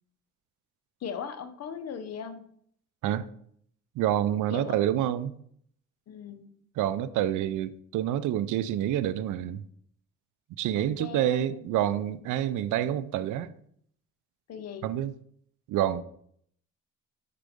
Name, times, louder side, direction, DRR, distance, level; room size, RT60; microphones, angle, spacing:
voice 1, 1.0-2.4 4.5-4.8 6.1-6.5 10.7-11.7 14.5-14.9, left 7 dB, 55° left, 0.8 m, -39 dB
voice 2, 4.0-5.3 6.8-9.6 10.6-13.5 14.8-15.1 15.7-16.0, right 11 dB, 80° right, 0.5 m, -27 dB
5.1 x 4.6 x 5.0 m
cardioid pair, 90°, 30 cm